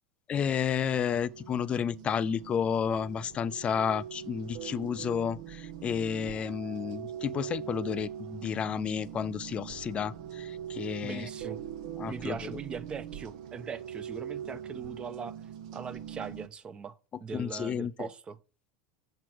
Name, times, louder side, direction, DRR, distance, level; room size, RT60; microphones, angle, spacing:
voice 1, 0.3-11.3 12.0-12.4 17.3-18.1, left 7 dB, 30° left, 0.4 m, -31 dB
sound 1, 0.8-16.5, right 9 dB, 70° right, 0.8 m, -42 dB
voice 2, 11.0-11.6 12.1-15.4 15.7-18.4, right 5 dB, 25° right, 0.7 m, -40 dB
7.3 x 4.6 x 6.1 m
hypercardioid pair, 105°, 4 cm